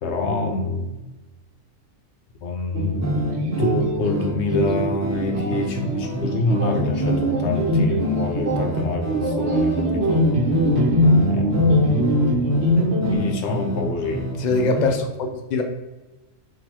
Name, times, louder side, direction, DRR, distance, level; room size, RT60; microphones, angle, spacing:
voice 1, 0.0-0.9 2.4-3.3 3.6-10.3 11.3-11.8 13.1-14.3, left 2 dB, 65° left, 4 dB, 0.9 m, -26 dB
sound 1, 2.7-13.2, left 1 dB, 60° right, 1.0 m, -22 dB
sound 2, 2.9-14.9, equal, 30° right, 0.3 m, -28 dB
voice 2, 14.4-15.6, left 3 dB, 50° left, 5 dB, 0.6 m, -22 dB
4.8 x 3.8 x 2.9 m, 1.1 s
omnidirectional pair, 1.3 m